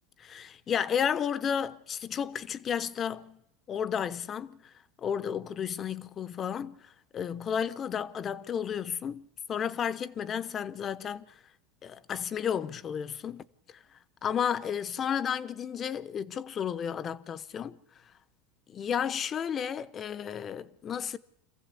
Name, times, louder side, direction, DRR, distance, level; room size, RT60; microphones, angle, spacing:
voice 1, 0.2-3.4 3.7-4.7 5.0-11.3 11.8-13.8 14.2-17.8 18.7-21.2, left 8 dB, 30° left, 0.9 m, -32 dB
26.5 x 15.0 x 8.4 m
supercardioid pair, 130°, 0 cm